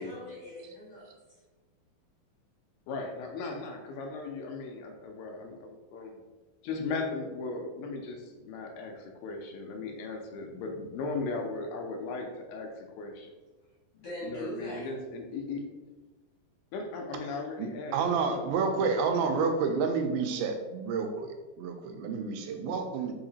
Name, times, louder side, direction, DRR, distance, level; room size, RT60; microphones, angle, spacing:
voice 1, 0.0-1.4 13.9-14.9, equal, 55° left, -10 dB, 1.7 m, -41 dB
voice 2, 2.9-6.2 6.6-13.3 14.2-15.6 16.7-18.4 19.2-19.4, left 3 dB, 80° left, 3 dB, 2.3 m, -37 dB
voice 3, 17.6-23.1, right 5 dB, 90° right, 5 dB, 2.4 m, -29 dB
5.7 x 2.8 x 2.7 m, 1.2 s
omnidirectional pair, 4.1 m